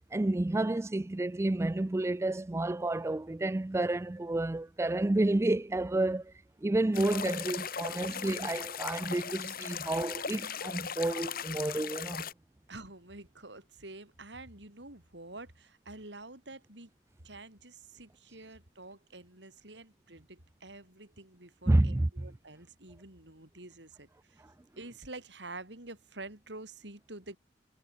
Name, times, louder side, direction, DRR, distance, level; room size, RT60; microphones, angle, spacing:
voice 1, 0.1-6.3 6.6-12.3 21.7-22.1, right 2 dB, 15° right, 0.4 m, -30 dB
sound 1, 6.9-12.3, left 7 dB, 55° left, 2.4 m, -38 dB
voice 2, 12.7-16.9 17.2-24.4 24.8-27.4, right 2 dB, 70° right, 5.2 m, -48 dB
head